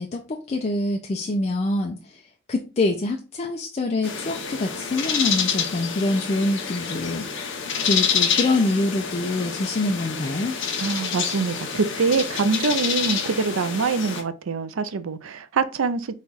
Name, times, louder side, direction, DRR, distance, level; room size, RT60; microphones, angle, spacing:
voice 1, 0.0-2.2 2.5-7.3 7.8-10.5, left 2 dB, 30° left, 0.4 m, -25 dB
sound 1, 4.0-14.2, left 6 dB, 60° left, 0.8 m, -27 dB
voice 2, 10.8-16.1, right 4 dB, 70° right, 0.4 m, -24 dB
4.2 x 2.3 x 3.8 m
head